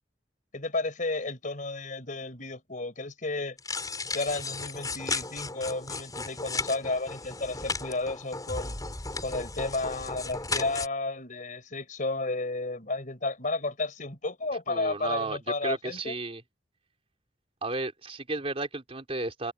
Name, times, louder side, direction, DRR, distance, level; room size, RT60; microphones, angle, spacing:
voice 1, 0.5-3.6 4.1-8.8 9.2-16.1, left 3 dB, 45° left, 4.7 m, -32 dB
sound 1, 3.6-10.9, left 3 dB, 20° left, 5.7 m, -35 dB
voice 2, 14.7-16.4 17.6-19.5, right 2 dB, 35° right, 3.6 m, -33 dB
open air
head